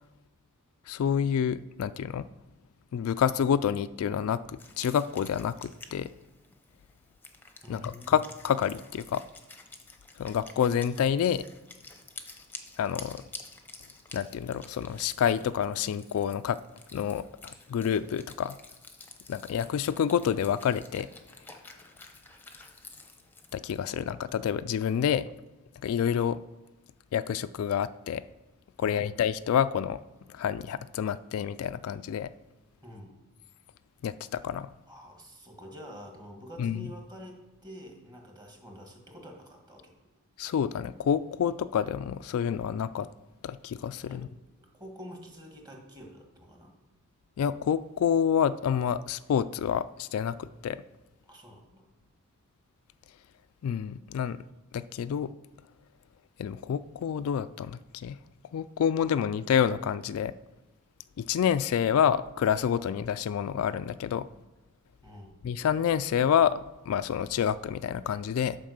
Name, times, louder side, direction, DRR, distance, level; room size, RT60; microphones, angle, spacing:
voice 1, 0.9-2.3 2.9-6.1 7.7-9.2 10.2-11.4 12.8-13.2 14.1-16.6 16.9-18.6 19.3-21.1 23.5-25.3 25.8-26.4 27.1-28.2 28.8-30.0 30.3-32.3 34.0-34.7 36.6-36.9 40.4-43.1 43.4-44.3 47.4-50.8 53.6-54.4 54.7-55.3 56.4-58.2 58.5-60.3 61.2-64.3 65.4-68.6, left 8 dB, 70° left, 14 dB, 0.3 m, -28 dB
Wind instrument woodwind instrument, 4.6-23.6, left 3 dB, 10° left, 0.8 m, -50 dB
voice 2, 7.6-8.2 23.9-24.0 28.8-29.1 32.8-33.2 34.9-39.9 44.0-44.3 44.6-46.7 51.2-51.9 65.0-65.4, equal, 20° right, 1 dB, 1.6 m, -47 dB
9.2 x 4.7 x 6.5 m, 1.1 s
head